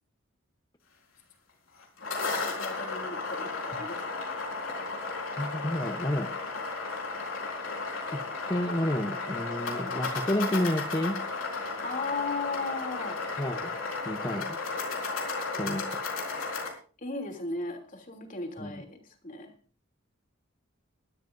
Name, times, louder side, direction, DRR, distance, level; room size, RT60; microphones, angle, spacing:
sound 1, 1.8-16.7, left 3 dB, 85° left, 4.5 m, -34 dB
voice 1, 2.2-4.0 11.6-13.2 17.0-19.5, left 3 dB, 40° left, 4 dB, 3.1 m, -36 dB
voice 2, 5.3-6.3 8.1-8.2 8.5-11.2 13.4-13.8 14.0-14.6 15.6-16.0 18.6-18.8, left 1 dB, 20° left, 6 dB, 0.9 m, -30 dB
21.5 x 13.0 x 2.7 m, 0.37 s
head